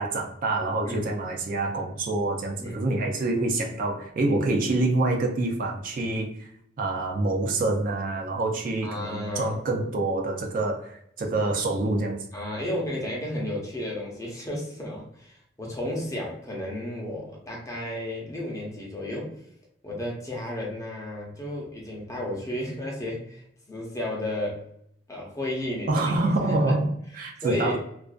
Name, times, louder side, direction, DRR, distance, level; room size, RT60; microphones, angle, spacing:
voice 1, 0.0-6.5 6.8-12.3 25.9-27.8, right 2 dB, 50° right, 2 dB, 0.3 m, -26 dB
voice 2, 8.8-9.6 12.3-19.3 19.8-24.6 25.1-26.5 27.4-27.8, left 1 dB, 20° left, -3 dB, 0.6 m, -33 dB
2.4 x 2.2 x 2.3 m, 0.72 s
head